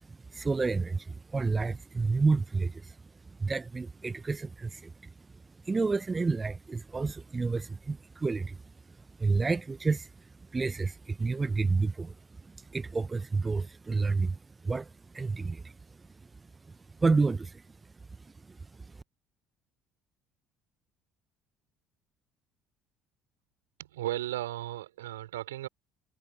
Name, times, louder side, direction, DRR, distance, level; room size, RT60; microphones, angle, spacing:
voice 1, 0.0-8.6 8.9-19.0, right 4 dB, 25° right, 0.8 m, -31 dB
voice 2, 23.8-25.7, right 14 dB, 75° right, 4.3 m, -35 dB
figure-of-eight pair, 55°, 0 cm